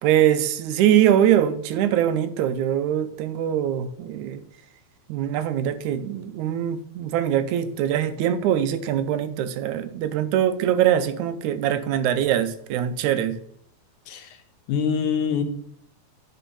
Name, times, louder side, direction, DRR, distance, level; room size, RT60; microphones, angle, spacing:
voice 1, 0.0-4.4 5.1-13.4, right 10 dB, 80° right, 12 dB, 2.1 m, -22 dB
voice 2, 14.1-14.4 14.7-15.4, left 7 dB, 80° left, 6 dB, 2.5 m, -24 dB
10.0 x 4.1 x 5.4 m, 0.70 s
omnidirectional pair, 3.5 m